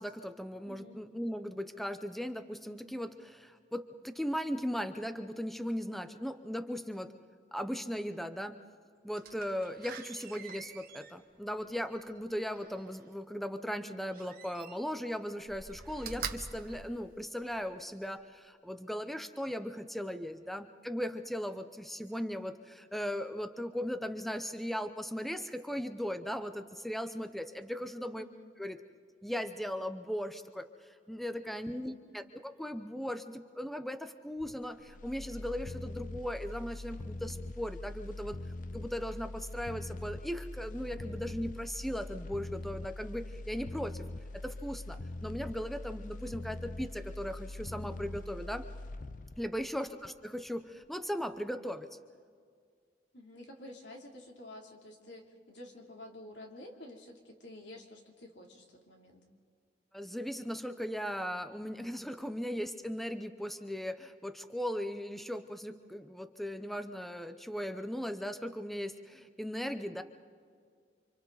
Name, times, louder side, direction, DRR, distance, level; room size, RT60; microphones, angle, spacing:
voice 1, 0.0-7.1 7.5-8.6 9.0-28.2 28.6-28.8 29.2-38.4 38.7-44.0 44.3-48.7 49.4-51.9 59.9-70.0, equal, ahead, 9 dB, 0.7 m, -38 dB
voice 2, 0.6-1.0 28.1-28.5 31.7-31.8 49.7-50.0 53.1-59.2, left 1 dB, 90° left, 1 dB, 3.0 m, -50 dB
Slam, 9.1-13.0 14.1-15.0 15.4-17.7 18.2-18.3, right 6 dB, 55° right, 1.5 m, -46 dB
sound 1, 34.4-50.5 50.8-50.9, left 2 dB, 50° left, 0.6 m, -43 dB
29.0 x 26.0 x 4.0 m, 2.1 s
head